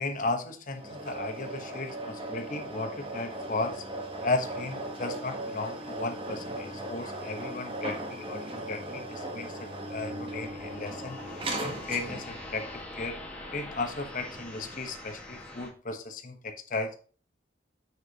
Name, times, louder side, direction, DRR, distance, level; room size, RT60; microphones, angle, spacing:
voice 1, 0.0-3.8 4.2-13.2 13.5-17.0, left 3 dB, 45° left, 5 dB, 1.1 m, -35 dB
sound 1, 0.7-12.4, right 1 dB, 30° right, 1.3 m, -38 dB
sound 2, 10.0-15.7, left 2 dB, 10° left, 1.6 m, -43 dB
7.1 x 6.4 x 2.9 m, 0.39 s
head